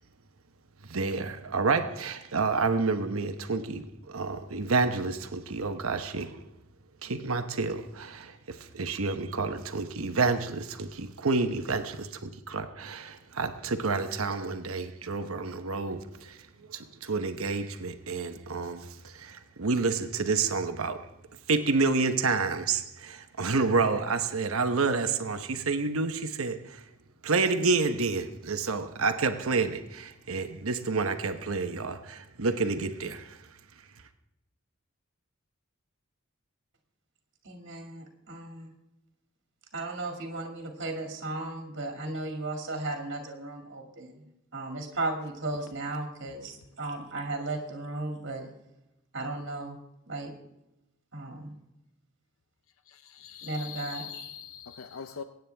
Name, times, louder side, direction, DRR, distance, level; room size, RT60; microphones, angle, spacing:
voice 1, 0.9-6.4 7.0-21.0 21.5-26.8 27.2-33.5, right 4 dB, 80° right, 1.0 m, -29 dB
voice 2, 37.4-38.7 39.7-44.2 44.5-48.5 49.1-49.8 50.1-50.3 51.1-51.5 53.4-54.3, right 2 dB, 55° right, 2.3 m, -35 dB
voice 3, 52.9-55.2, left 8 dB, 75° left, 0.6 m, -42 dB
23.0 x 9.3 x 3.4 m
head